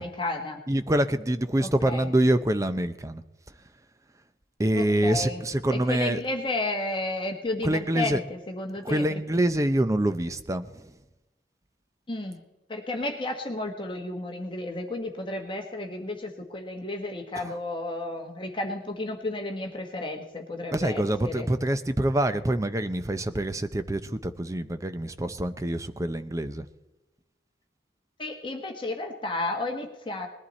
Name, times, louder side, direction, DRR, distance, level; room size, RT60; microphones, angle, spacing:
voice 1, 0.0-0.6 1.6-2.1 4.7-5.4 5.7-9.2 12.1-12.4 12.7-21.5 28.2-30.3, left 2 dB, 30° left, 3 dB, 1.4 m, -32 dB
voice 2, 0.7-3.2 4.6-6.2 7.6-8.2 8.8-10.7 17.4-17.5 20.7-26.6, right 1 dB, 20° right, 11 dB, 0.6 m, -26 dB
20.0 x 11.5 x 4.2 m, 1.0 s
head